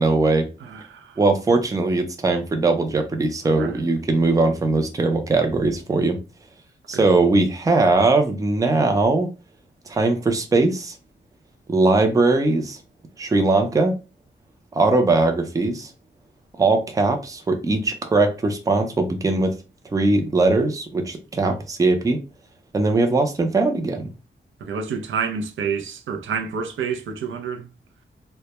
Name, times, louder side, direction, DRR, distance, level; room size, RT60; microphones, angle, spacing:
voice 1, 0.0-0.5 1.2-6.2 6.9-9.3 9.9-10.9 11.7-12.8 13.2-13.9 14.7-15.9 16.5-19.6 19.9-22.2 22.7-24.1, right 3 dB, 15° right, 0.4 m, -20 dB
voice 2, 0.6-1.2 3.4-3.8 6.9-7.1 21.4-21.6 24.6-27.7, right 6 dB, 90° right, 0.5 m, -29 dB
2.1 x 2.1 x 2.8 m
wide cardioid pair, 135°, 20 cm